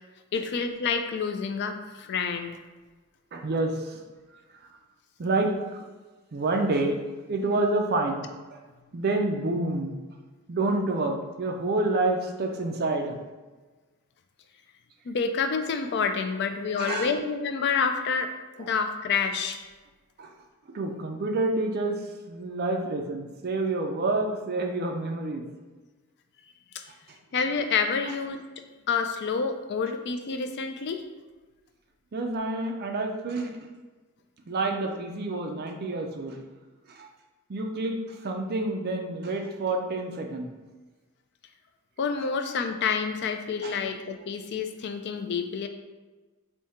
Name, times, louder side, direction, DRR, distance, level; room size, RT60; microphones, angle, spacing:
voice 1, 0.3-2.6 15.1-18.3 18.6-19.6 26.7-26.8 27.3-28.4 28.9-31.0 42.0-45.7, left 5 dB, 50° left, 7 dB, 0.3 m, -28 dB
voice 2, 3.3-4.0 4.3-4.4 5.2-5.8 6.3-7.0 7.3-8.6 8.9-10.0 10.5-13.2 16.8-17.1 18.6-18.7 20.2-20.3 20.7-22.0 22.3-25.4 28.1-28.2 32.1-33.5 34.5-36.4 36.9-37.1 37.5-40.5 43.6-43.7, right 2 dB, 45° right, 4 dB, 0.4 m, -28 dB
3.5 x 2.7 x 4.2 m, 1.3 s
head